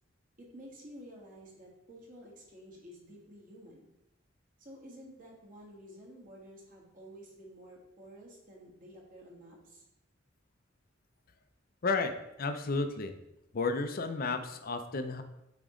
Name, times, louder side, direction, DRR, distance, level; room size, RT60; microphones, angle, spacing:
voice 1, 0.4-3.9 4.6-9.8, equal, 45° right, -3 dB, 1.6 m, -51 dB
voice 2, 11.8-12.1 12.4-13.1 13.5-15.2, left 3 dB, 50° left, 8 dB, 0.5 m, -32 dB
8.6 x 3.0 x 3.7 m, 0.88 s
head